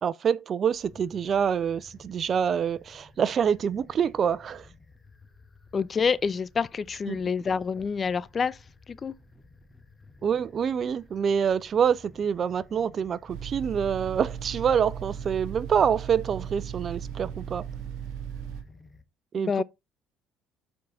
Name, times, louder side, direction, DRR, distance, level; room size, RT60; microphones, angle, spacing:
voice 1, 0.0-4.7 7.1-7.2 10.2-17.6 19.3-19.6, right 7 dB, 45° right, 0.5 m, -26 dB
sound 1, 0.7-19.0, left 3 dB, 15° left, 1.4 m, -54 dB
voice 2, 5.7-8.6 9.0-9.1 19.4-19.6, left 5 dB, 35° left, 0.5 m, -27 dB
sound 2, 13.3-18.6, right 8 dB, 65° right, 2.3 m, -37 dB
7.1 x 4.7 x 4.0 m
hypercardioid pair, 65°, 0 cm